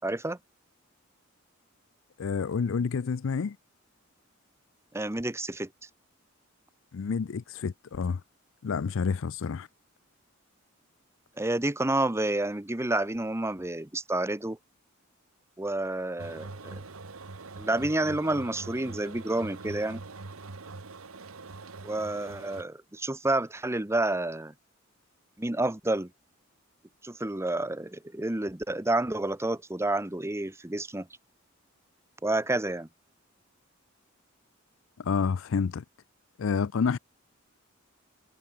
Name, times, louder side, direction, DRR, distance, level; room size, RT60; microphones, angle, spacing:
voice 1, 0.0-0.4 4.9-5.7 11.4-14.6 15.6-16.8 17.6-20.0 21.8-24.5 25.4-26.1 27.0-31.1 32.2-32.9, right 2 dB, 15° right, 0.9 m, -29 dB
voice 2, 2.2-3.6 6.9-8.2 8.6-9.7 35.0-35.8 36.4-37.0, left 5 dB, 65° left, 0.4 m, -29 dB
sound 1, 16.2-22.6, right 3 dB, 85° right, 1.3 m, -43 dB
head